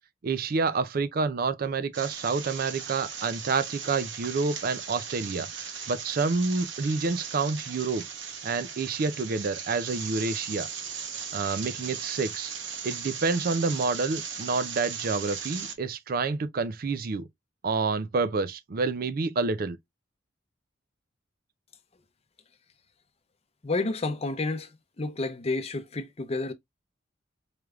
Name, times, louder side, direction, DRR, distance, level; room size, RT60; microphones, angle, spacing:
voice 1, 0.2-8.0 8.4-10.7 11.3-12.5 12.8-17.3 17.6-19.8, right 4 dB, 50° right, 0.4 m, -28 dB
sound 1, 1.9-15.7, right 7 dB, 70° right, 0.9 m, -38 dB
voice 2, 23.6-24.7 25.0-26.5, left 3 dB, 30° left, 0.6 m, -30 dB
4.8 x 3.3 x 2.3 m
head